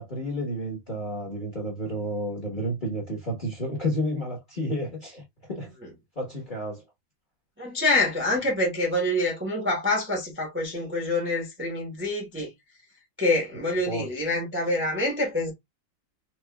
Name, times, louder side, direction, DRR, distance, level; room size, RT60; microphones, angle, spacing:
voice 1, 0.0-5.7 6.2-6.8 13.8-14.1, equal, 30° left, 1.1 m, -31 dB
voice 2, 7.6-12.5 13.2-15.5, left 2 dB, 10° right, 0.8 m, -26 dB
4.5 x 2.5 x 2.2 m
omnidirectional pair, 2.0 m